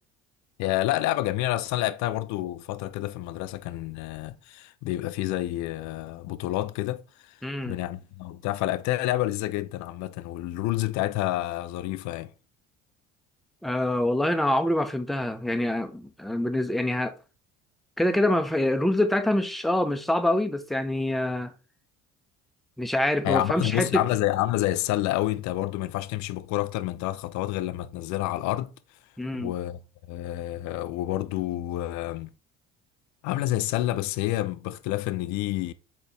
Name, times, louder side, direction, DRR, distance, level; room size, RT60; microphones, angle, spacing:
voice 1, 0.6-7.4 7.6-12.3 23.2-28.7 29.3-29.8 30.1-32.3 33.2-35.7, left 15 dB, 60° left, 0.5 m, -28 dB
voice 2, 7.4-7.8 13.6-17.1 18.0-21.5 22.8-24.0 29.2-29.5, left 1 dB, ahead, 0.4 m, -25 dB
4.0 x 2.9 x 3.2 m
hypercardioid pair, 70°, 32 cm